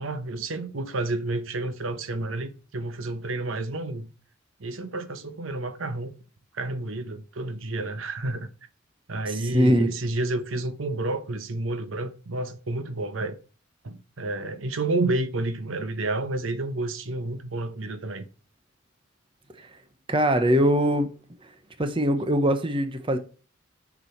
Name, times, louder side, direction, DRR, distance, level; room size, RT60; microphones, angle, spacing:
voice 1, 0.0-4.1 4.6-6.1 6.5-8.5 9.1-13.4 13.8-18.2, right 2 dB, 80° right, 0.9 m, -30 dB
voice 2, 9.5-9.9 20.1-21.1 21.8-23.2, equal, 25° right, 0.9 m, -21 dB
6.8 x 6.2 x 4.5 m
head